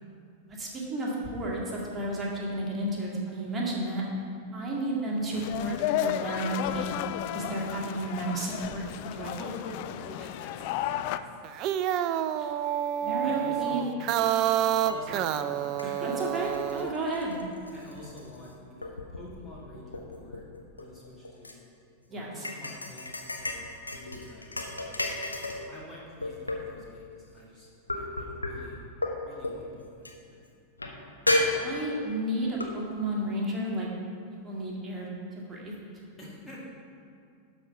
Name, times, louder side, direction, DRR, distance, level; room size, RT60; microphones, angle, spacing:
voice 1, 0.6-4.0 4.5-6.9 7.3-9.3 12.4-12.5 13.0-13.9 16.0-17.4 22.1-22.5 31.6-33.9 34.4-35.7, right 1 dB, 20° right, -3 dB, 1.9 m, -32 dB
sound 1, 5.3-11.2, left 11 dB, 45° left, 0.3 m, -33 dB
voice 2, 9.2-11.3 13.2-14.0 14.9-16.2 17.7-20.4 20.8-21.6 22.1-24.6 24.9-25.2 25.7-28.8 29.3-30.4 36.2-36.6, left 1 dB, 10° left, -5 dB, 1.6 m, -46 dB
sound 2, 11.4-16.9, right 11 dB, 40° right, 0.3 m, -28 dB
sound 3, 14.9-15.0 15.4-18.5 18.8-19.3 19.7-21.5 22.4-25.7 26.2-26.9 27.9-28.5 29.0-29.1 29.4-29.6 30.0-30.1 30.8-30.9 31.3-32.1 32.6-32.7, left 2 dB, 80° left, 0.9 m, -32 dB
11.5 x 4.3 x 5.7 m, 2.5 s
figure-of-eight pair, 90°, 0 cm